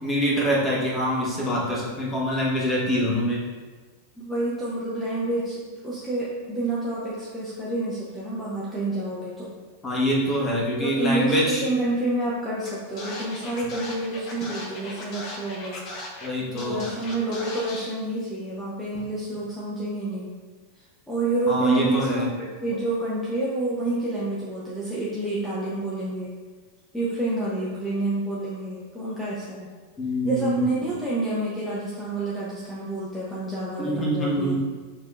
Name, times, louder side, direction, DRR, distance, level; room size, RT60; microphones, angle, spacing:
voice 1, 0.0-3.4 9.8-11.6 16.2-16.8 21.5-22.3 30.0-30.6 33.8-34.5, equal, 20° left, -5 dB, 1.2 m, -25 dB
voice 2, 4.2-9.5 10.8-15.8 16.1-16.2 16.5-20.3 21.1-26.3 26.9-29.7 30.2-34.5, right 2 dB, 5° left, -9 dB, 0.8 m, -28 dB
Scratching (performance technique), 12.6-12.7 13.0-16.3 16.6-17.9, left 2 dB, 35° left, 0.8 m, -37 dB
6.3 x 2.8 x 2.3 m, 1.4 s
figure-of-eight pair, 90°, 0 cm